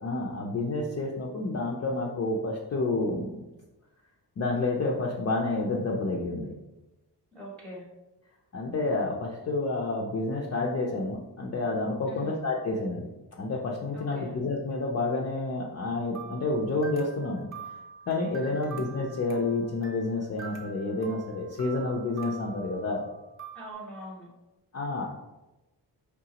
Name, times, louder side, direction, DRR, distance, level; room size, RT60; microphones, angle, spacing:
voice 1, 0.0-3.4 4.4-6.5 8.5-13.1 13.4-17.5 18.1-23.1 24.7-25.1, left 2 dB, 35° left, -2 dB, 0.5 m, -29 dB
voice 2, 7.3-7.9 12.1-12.3 13.9-14.4 18.3-18.6 23.5-24.3, right 1 dB, 5° left, -5 dB, 0.7 m, -42 dB
sound 1, 16.1-23.7, right 7 dB, 30° right, 0.6 m, -45 dB
4.8 x 3.5 x 2.8 m, 1.0 s
wide cardioid pair, 160°, 41 cm